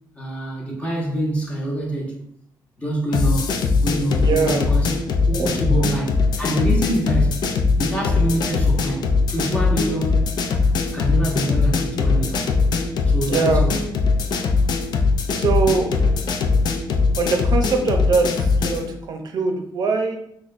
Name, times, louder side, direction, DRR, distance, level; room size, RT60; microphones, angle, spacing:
voice 1, 0.2-2.2 2.8-3.5 3.8-5.0 5.3-7.4 7.8-10.3 10.9-12.5 13.1-13.8, right 1 dB, 15° left, 1.0 m, -25 dB
sound 1, 3.1-18.9, left 4 dB, 65° left, 0.5 m, -21 dB
voice 2, 4.2-4.6 5.3-5.9 13.3-13.6 15.3-16.1 17.2-20.2, right 4 dB, 60° right, 0.6 m, -22 dB
6.0 x 2.2 x 2.5 m
cardioid pair, 105°, 8 cm